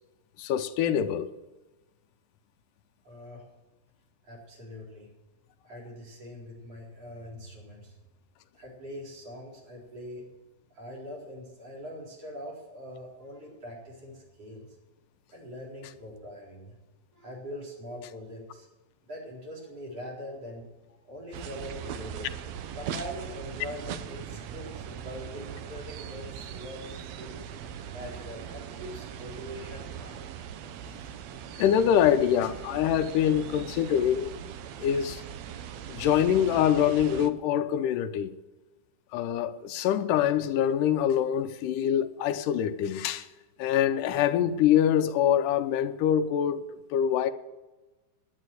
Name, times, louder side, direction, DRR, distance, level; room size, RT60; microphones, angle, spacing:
voice 1, 0.4-1.3 31.6-34.3 34.8-35.2 35.9-38.3 39.1-43.3 43.6-46.6 46.9-47.3, left 9 dB, 85° left, 2.3 m, -24 dB
voice 2, 3.0-3.4 4.2-5.1 5.6-8.0 8.5-10.3 10.7-14.7 15.3-16.7 17.1-18.7 19.1-22.3 22.7-27.4 27.9-30.2, equal, 50° right, 5.2 m, -42 dB
sound 1, 21.3-37.3, right 8 dB, 75° right, 1.7 m, -40 dB
11.0 x 9.9 x 7.8 m
omnidirectional pair, 3.6 m